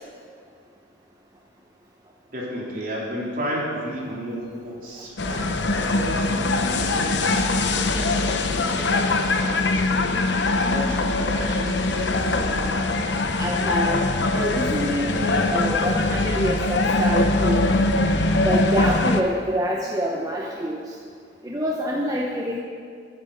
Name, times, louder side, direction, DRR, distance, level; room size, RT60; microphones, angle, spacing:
voice 1, 2.3-10.2 10.5-12.3, equal, 50° right, -5 dB, 3.4 m, -33 dB
sound 1, 5.2-19.2, left 2 dB, 65° left, 0.8 m, -22 dB
voice 2, 13.4-17.7 18.4-21.0 21.4-22.6, equal, 20° right, -2 dB, 0.9 m, -26 dB
10.5 x 9.6 x 7.9 m, 2.1 s
head